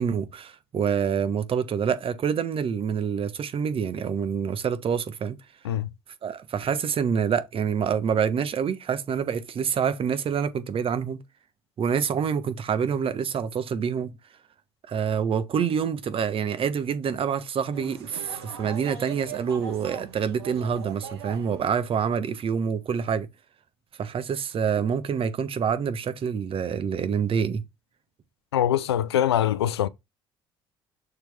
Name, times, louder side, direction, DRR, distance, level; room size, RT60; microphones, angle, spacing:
voice 1, 0.0-5.4 6.2-11.2 11.8-14.1 14.9-23.3 24.0-27.6, right 7 dB, 45° right, 1.2 m, -26 dB
sound 1, 17.7-21.8, right 7 dB, 85° right, 1.3 m, -40 dB
voice 2, 28.5-29.9, left 11 dB, 85° left, 0.4 m, -23 dB
6.7 x 4.4 x 3.5 m
hypercardioid pair, 55°, 13 cm